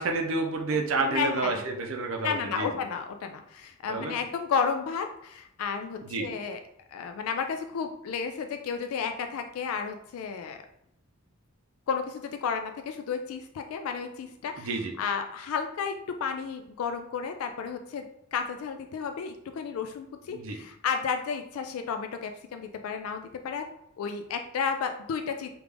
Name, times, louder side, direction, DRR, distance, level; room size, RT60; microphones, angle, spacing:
voice 1, 0.0-2.7 3.9-4.2 6.0-6.3 14.6-14.9 20.3-20.6, right 3 dB, 70° right, 3 dB, 0.6 m, -29 dB
voice 2, 1.1-1.6 2.2-6.6 6.9-10.6 11.9-14.7 15.0-15.9 16.2-18.0 18.3-23.6 24.0-25.5, left 6 dB, 80° left, 6 dB, 0.3 m, -32 dB
3.4 x 2.4 x 3.3 m, 0.80 s
head